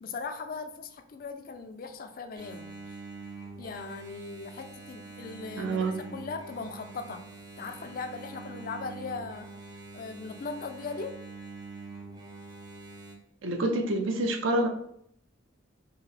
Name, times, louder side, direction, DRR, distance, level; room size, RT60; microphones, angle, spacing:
voice 1, 0.0-3.0 3.6-7.2 7.6-9.5 9.9-11.2, left 4 dB, 45° left, 8 dB, 0.3 m, -39 dB
Engine, 2.3-13.1, right 3 dB, 20° right, 0.6 m, -45 dB
voice 2, 5.6-6.0 13.4-14.7, right 2 dB, 70° right, 4 dB, 0.6 m, -27 dB
4.7 x 2.0 x 3.2 m, 0.69 s
head